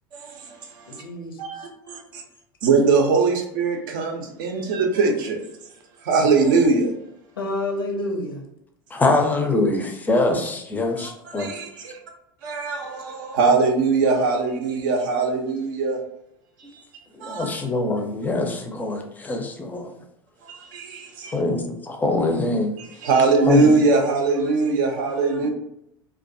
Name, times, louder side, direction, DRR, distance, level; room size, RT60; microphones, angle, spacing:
voice 1, 0.1-1.0 1.4-2.2 2.6-5.4 6.0-6.9 11.0-12.0 12.4-16.0 16.7-16.8 17.2-17.5 20.4-21.4 22.8-25.5, right 4 dB, 65° right, 3 dB, 0.5 m, -21 dB
voice 2, 0.9-1.7 7.4-8.4 25.4-25.5, left 1 dB, 85° left, 2 dB, 0.6 m, -29 dB
voice 3, 8.9-11.5 17.1-19.9 21.3-22.7 23.5-23.7, left 2 dB, 15° left, 4 dB, 0.4 m, -23 dB
2.3 x 2.2 x 2.5 m, 0.79 s
hypercardioid pair, 80°, 12 cm